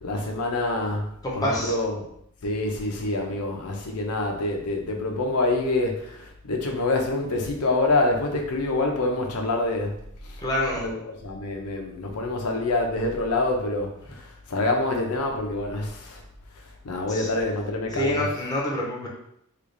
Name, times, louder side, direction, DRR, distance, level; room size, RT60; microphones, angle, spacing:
voice 1, 0.0-2.1 2.4-9.9 10.2-10.4 10.8-16.2 16.8-18.3, left 2 dB, 90° left, 2 dB, 0.7 m, -26 dB
voice 2, 1.2-1.7 10.4-10.9 17.1-17.3 17.9-19.1, left 1 dB, 15° left, -3 dB, 0.7 m, -27 dB
3.3 x 2.4 x 3.8 m, 0.73 s
head